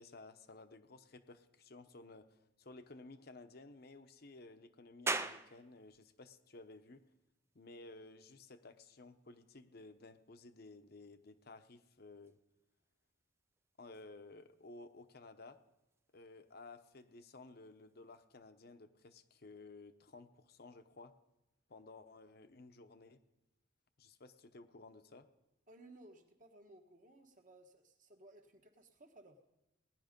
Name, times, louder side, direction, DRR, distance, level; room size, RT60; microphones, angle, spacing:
voice 1, 0.0-7.0 7.5-12.4 13.8-15.6 16.1-21.1 21.7-23.2 24.0-25.3, left 3 dB, 50° left, 9 dB, 0.9 m, -55 dB
sound 1, 5.1-18.2, right 3 dB, 15° right, 0.4 m, -49 dB
voice 2, 25.7-29.4, right 1 dB, 40° right, 4 dB, 1.4 m, -60 dB
18.5 x 10.5 x 5.3 m, 0.96 s
head